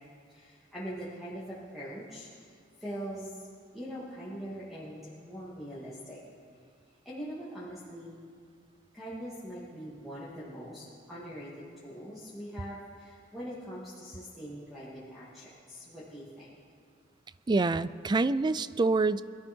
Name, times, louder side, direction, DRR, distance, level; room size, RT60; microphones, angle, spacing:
voice 1, 0.3-2.3 2.8-3.4 3.7-6.2 7.0-8.1 8.9-16.5, equal, ahead, -10 dB, 2.5 m, -42 dB
voice 2, 17.5-19.2, right 3 dB, 25° right, 16 dB, 0.3 m, -26 dB
22.0 x 13.0 x 4.6 m, 2.1 s
head